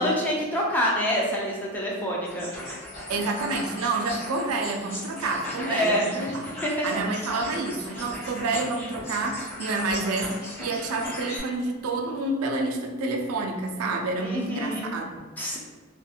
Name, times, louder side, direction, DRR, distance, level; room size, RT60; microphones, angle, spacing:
voice 1, 0.0-2.5 5.7-6.3 6.6-6.9 14.2-14.8 15.4-15.6, equal, 10° left, -3 dB, 0.5 m, -26 dB
sound 1, 2.3-11.4, left 1 dB, 30° left, 1.3 m, -37 dB
voice 2, 3.1-6.6 6.8-15.4, right 2 dB, 90° right, 3 dB, 0.4 m, -29 dB
2.8 x 2.4 x 2.3 m, 1.4 s
head